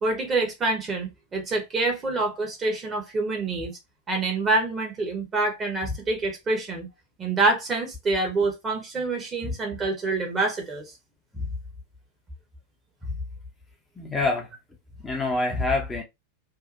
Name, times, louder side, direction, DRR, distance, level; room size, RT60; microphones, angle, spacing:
voice 1, 0.0-3.7 4.1-6.9 7.2-10.9, right 3 dB, 20° right, 1.1 m, -26 dB
voice 2, 14.0-14.5 15.0-16.0, left 3 dB, 10° left, 0.7 m, -26 dB
2.7 x 2.3 x 2.6 m
figure-of-eight pair, 90°, 0 cm